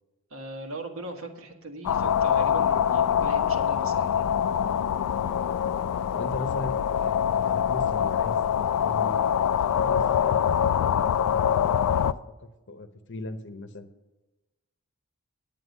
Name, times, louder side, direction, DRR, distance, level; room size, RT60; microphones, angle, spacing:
voice 1, 0.3-4.3, right 2 dB, 65° right, 3 dB, 1.5 m, -39 dB
sound 1, 1.8-12.1, left 9 dB, 85° left, 0.3 m, -24 dB
voice 2, 6.1-9.2 9.6-12.1 12.4-13.9, left 1 dB, 55° left, 9 dB, 0.8 m, -39 dB
9.7 x 8.8 x 5.4 m, 1.1 s
head